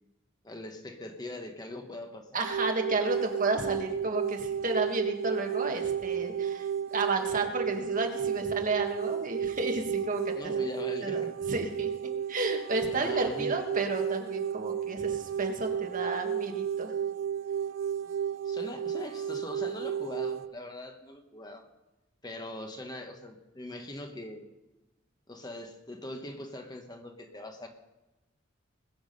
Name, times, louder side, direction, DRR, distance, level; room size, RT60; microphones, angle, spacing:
voice 1, 0.4-2.4 10.3-11.3 12.9-13.5 18.4-21.6 22.2-24.5 25.3-27.7, left 1 dB, 20° left, 4 dB, 1.2 m, -41 dB
voice 2, 2.3-10.6 11.0-16.9, right 2 dB, 45° right, 3 dB, 1.7 m, -32 dB
sound 1, 2.4-20.5, right 8 dB, 80° right, 0.6 m, -33 dB
20.5 x 7.2 x 5.4 m, 1.0 s
head